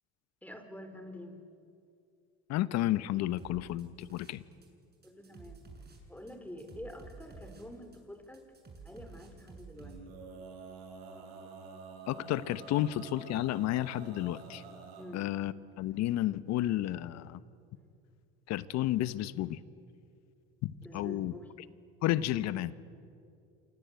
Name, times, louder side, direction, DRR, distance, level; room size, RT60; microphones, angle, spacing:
voice 1, 0.4-1.4 5.0-5.7 6.1-8.4 8.8-10.0 15.0-15.2 17.7-17.9 20.8-21.7, left 1 dB, 5° left, 7 dB, 4.8 m, -47 dB
voice 2, 2.5-4.4 12.1-14.6 15.1-17.4 18.5-19.6 20.6-21.3 22.0-22.7, left 14 dB, 60° left, 15 dB, 1.2 m, -32 dB
sound 1, 3.4-4.7 4.9-10.0, right 4 dB, 30° right, 7.9 m, -51 dB
Male singing, 9.7-15.1, right 4 dB, 85° right, 6.5 m, -48 dB
28.0 x 25.0 x 8.4 m, 2.5 s
hypercardioid pair, 80°, 31 cm